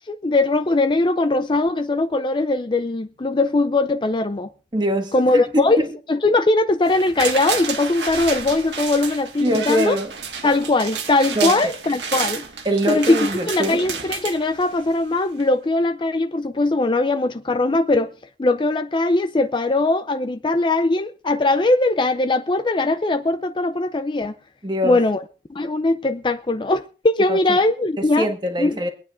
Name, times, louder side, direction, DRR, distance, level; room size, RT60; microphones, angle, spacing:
voice 1, 0.1-4.5 5.1-5.8 6.1-10.0 10.4-12.4 12.9-18.1 18.4-24.3 24.8-25.2 25.5-28.3 28.6-28.8, left 2 dB, 30° left, 0.5 m, -20 dB
voice 2, 4.7-5.9 9.4-10.1 11.3-11.7 12.6-13.8 24.6-25.0 27.3-27.6 28.0-28.9, equal, 25° right, 1.6 m, -23 dB
sound 1, 6.9-15.0 15.4-15.5, right 6 dB, 80° right, 1.8 m, -30 dB
23.5 x 9.4 x 2.5 m
head